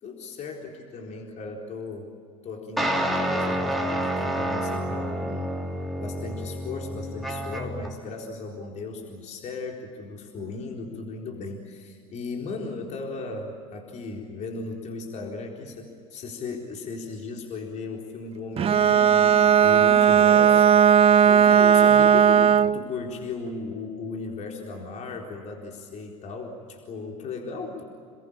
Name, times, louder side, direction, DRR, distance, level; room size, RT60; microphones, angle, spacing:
voice 1, 0.0-2.1 2.4-5.6 6.0-27.8, left 3 dB, 45° left, 1 dB, 4.1 m, -36 dB
sound 1, 2.8-7.9, right 1 dB, ahead, 3.4 m, -28 dB
Bowed string instrument, 18.6-22.8, right 8 dB, 35° right, 0.8 m, -17 dB
28.5 x 21.5 x 8.7 m, 2.3 s
hypercardioid pair, 85°, 17 cm